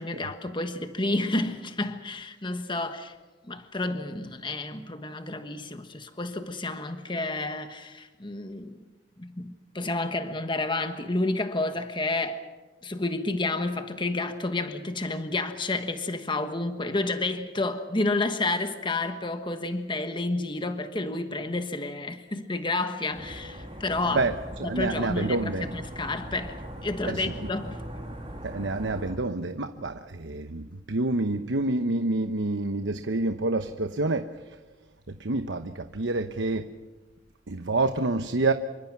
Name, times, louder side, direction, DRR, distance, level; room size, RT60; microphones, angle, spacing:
voice 1, 0.0-3.1 3.5-8.8 9.2-12.4 12.8-24.2 24.6-27.8, left 2 dB, 25° left, 1.3 m, -30 dB
sound 1, 23.1-29.1, equal, 30° right, 7.6 m, -40 dB
voice 2, 24.1-25.7 27.0-27.5 28.4-34.6 35.1-36.7 37.5-38.5, right 2 dB, 85° right, 1.0 m, -28 dB
27.5 x 24.5 x 6.0 m
head